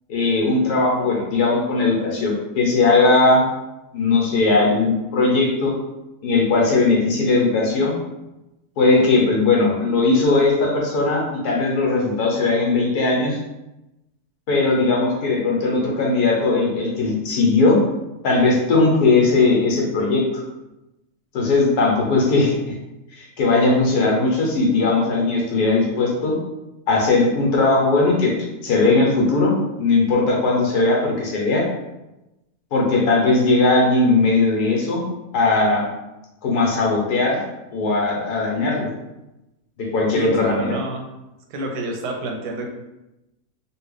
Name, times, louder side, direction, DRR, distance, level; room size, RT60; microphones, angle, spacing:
voice 1, 0.1-3.4 3.9-5.7 6.2-7.9 8.8-13.4 14.5-17.8 18.2-20.4 21.3-22.7 23.1-26.3 26.9-28.3 28.6-31.7 32.7-35.0 35.3-35.9 36.4-37.4 37.7-38.9 39.8-40.8, left 3 dB, 80° left, -2 dB, 1.4 m, -18 dB
voice 2, 40.1-41.1 41.5-42.7, right 2 dB, 90° right, 2 dB, 1.2 m, -28 dB
3.0 x 2.8 x 3.2 m, 0.97 s
omnidirectional pair, 1.7 m